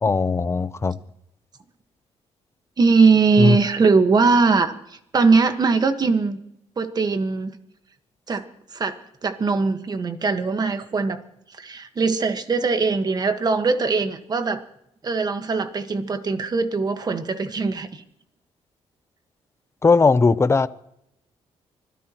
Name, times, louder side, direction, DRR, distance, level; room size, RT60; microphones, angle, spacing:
voice 1, 0.0-1.0 3.4-3.6 19.8-20.7, left 4 dB, 25° left, 0.7 m, -18 dB
voice 2, 2.8-6.4 6.8-7.5 8.3-8.4 8.7-9.0 9.2-11.2 11.6-14.6 15.0-18.0, right 4 dB, 35° right, 1.5 m, -21 dB
25.0 x 16.5 x 3.1 m
cardioid pair, 115°, 11 cm